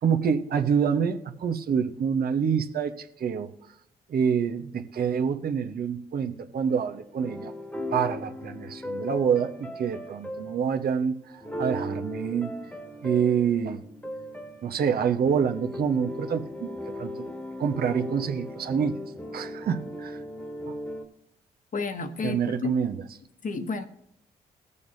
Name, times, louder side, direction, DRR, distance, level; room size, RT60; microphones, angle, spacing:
voice 1, 0.0-3.5 4.1-7.5 7.9-12.5 13.0-13.8 14.6-17.3 17.6-19.0 19.3-20.2 20.7-20.8 22.2-23.0, right 7 dB, 60° right, 1.1 m, -27 dB
sound 1, 6.7-21.0, left 1 dB, 5° left, 1.6 m, -38 dB
voice 2, 21.7-22.8 23.4-23.9, left 3 dB, 50° left, 1.2 m, -30 dB
20.5 x 6.9 x 2.7 m
supercardioid pair, 50°, 17 cm